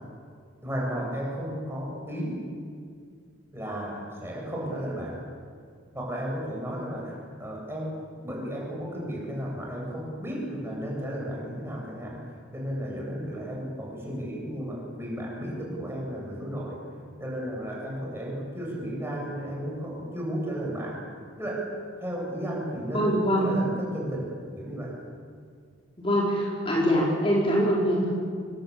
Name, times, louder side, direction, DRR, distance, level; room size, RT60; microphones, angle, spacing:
voice 1, 0.6-2.4 3.5-5.2 5.9-12.2 12.5-16.8 17.2-21.0 21.4-21.7 22.0-25.0, equal, 15° right, -2 dB, 7.9 m, -34 dB
voice 2, 22.9-23.4 26.0-28.1, equal, 30° left, -4 dB, 4.7 m, -23 dB
27.0 x 22.0 x 8.8 m, 2.1 s
head